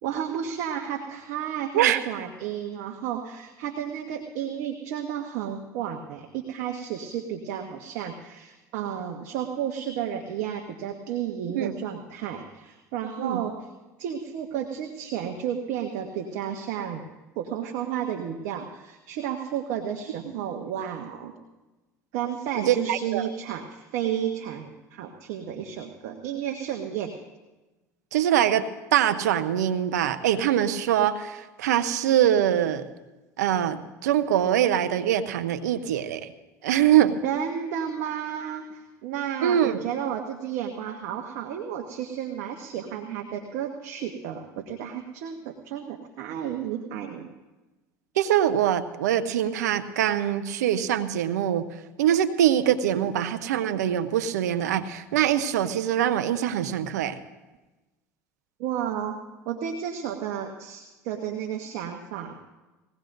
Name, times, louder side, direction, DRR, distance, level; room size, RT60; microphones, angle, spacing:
voice 1, 0.0-13.5 14.0-17.0 17.3-21.3 22.1-27.1 37.2-47.3 58.6-59.2 59.4-62.4, right 9 dB, 70° right, 4 dB, 1.2 m, -32 dB
voice 2, 22.5-23.3 28.1-28.6 28.9-32.8 33.4-36.3 36.6-37.2 39.4-39.8 48.2-51.6 52.0-57.2, right 10 dB, 85° right, 10 dB, 0.8 m, -23 dB
20.5 x 17.0 x 2.6 m, 1.1 s
hypercardioid pair, 80°, 9 cm